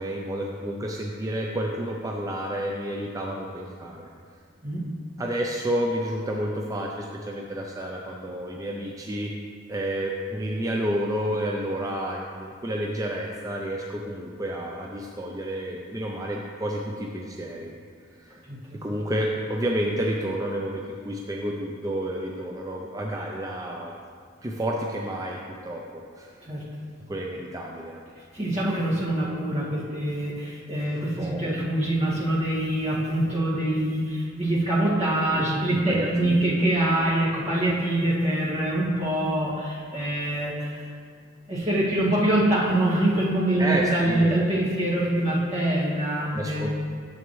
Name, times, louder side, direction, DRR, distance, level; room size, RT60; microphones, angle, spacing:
voice 1, 0.0-4.1 5.2-9.3 9.7-17.7 18.2-18.4 18.8-23.9 24.4-26.3 27.1-28.0 30.9-31.5 35.3-35.4 35.9-36.7 43.6-44.4 46.3-46.7, right 1 dB, 20° right, -1 dB, 0.4 m, -30 dB
voice 2, 28.3-40.9 41.5-46.7, right 1 dB, 35° right, -8 dB, 2.0 m, -24 dB
9.0 x 7.0 x 3.1 m, 2.1 s
head